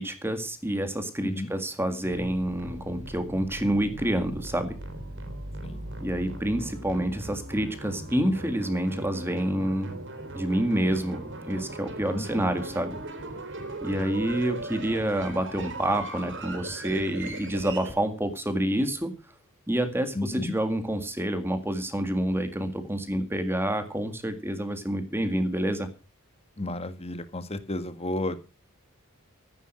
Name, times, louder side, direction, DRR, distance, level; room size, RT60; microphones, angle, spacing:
voice 1, 0.0-4.8 6.0-9.9 10.4-13.0 13.8-19.1 19.7-25.9, right 1 dB, 10° right, 8 dB, 1.9 m, -28 dB
sound 1, 2.0-17.9, right 2 dB, 55° right, 3.6 m, -39 dB
voice 2, 12.1-12.5 13.8-14.3 20.1-20.5 26.6-28.5, left 1 dB, 30° left, 11 dB, 1.5 m, -33 dB
14.5 x 9.6 x 6.2 m, 0.34 s
head